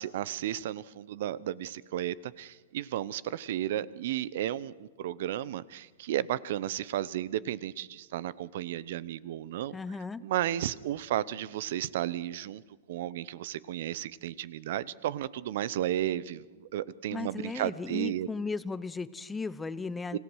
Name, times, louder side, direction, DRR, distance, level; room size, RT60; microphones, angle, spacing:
voice 1, 0.0-9.7 10.2-12.6 12.9-18.3 20.1-20.2, right 12 dB, 65° right, 20 dB, 0.8 m, -33 dB
voice 2, 9.7-10.2 17.1-20.2, left 4 dB, 10° left, 16 dB, 0.8 m, -36 dB
26.0 x 17.0 x 6.4 m, 1.3 s
hypercardioid pair, 115°, 0 cm